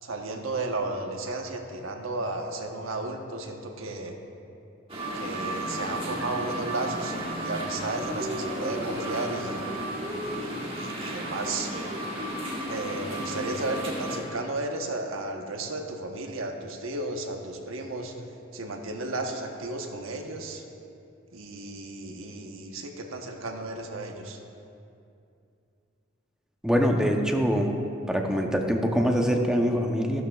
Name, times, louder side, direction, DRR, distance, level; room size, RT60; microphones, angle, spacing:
voice 1, 0.0-4.2 5.1-9.6 10.7-11.7 12.7-18.1 18.5-20.6 21.3-24.4, right 2 dB, 85° right, 3 dB, 1.1 m, -33 dB
sound 1, 4.9-14.2, right 1 dB, 30° right, 1.6 m, -33 dB
voice 2, 26.6-27.7 28.1-30.2, equal, 5° right, 2 dB, 0.7 m, -24 dB
13.5 x 12.5 x 2.4 m, 2.6 s
head